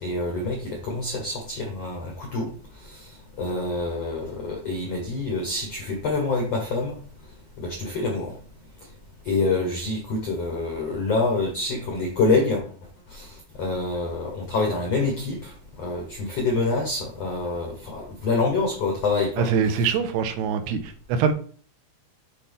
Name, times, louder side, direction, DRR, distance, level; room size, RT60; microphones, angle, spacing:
voice 1, 0.0-2.5 2.8-3.0 3.4-7.0 7.6-8.3 9.2-12.6 13.1-13.3 13.6-15.5 15.8-19.5, left 3 dB, 85° left, 1 dB, 1.4 m, -26 dB
voice 2, 19.4-21.3, right 6 dB, 85° right, 8 dB, 2.6 m, -23 dB
8.4 x 4.3 x 3.5 m, 0.43 s
omnidirectional pair, 4.9 m